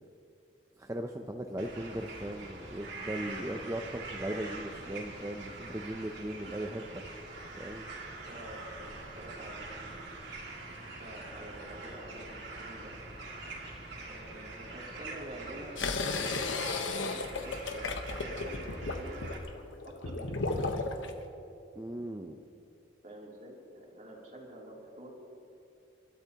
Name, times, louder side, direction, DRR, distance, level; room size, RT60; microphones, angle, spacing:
voice 1, 0.8-7.0 7.5-7.9 21.7-22.4, right 1 dB, 15° right, 3 dB, 0.6 m, -38 dB
sound 1, 1.6-19.4, right 2 dB, 60° right, 2.5 m, -44 dB
voice 2, 8.2-10.0 11.0-12.9 14.1-15.8 16.9-19.2 19.8-21.0 23.0-25.1, right 1 dB, 40° right, -3 dB, 3.1 m, -48 dB
sound 2, 15.8-21.1, left 3 dB, 75° left, 1.1 m, -34 dB
29.0 x 12.5 x 2.9 m, 2.7 s
head